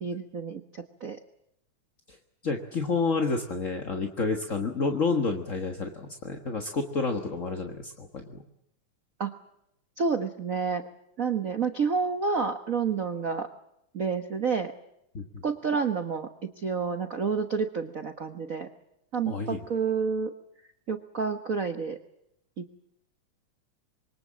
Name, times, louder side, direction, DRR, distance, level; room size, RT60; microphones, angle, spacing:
voice 1, 0.0-1.2 9.2-9.3 10.0-10.8 11.2-13.5 13.9-14.7 15.4-18.7 19.1-20.3 20.9-22.0 22.6-22.7, right 5 dB, 80° right, 8 dB, 0.7 m, -29 dB
voice 2, 2.4-8.4 15.1-15.4 19.3-19.7, left 4 dB, 40° left, 4 dB, 1.2 m, -29 dB
27.0 x 24.0 x 7.5 m, 0.80 s
omnidirectional pair, 3.5 m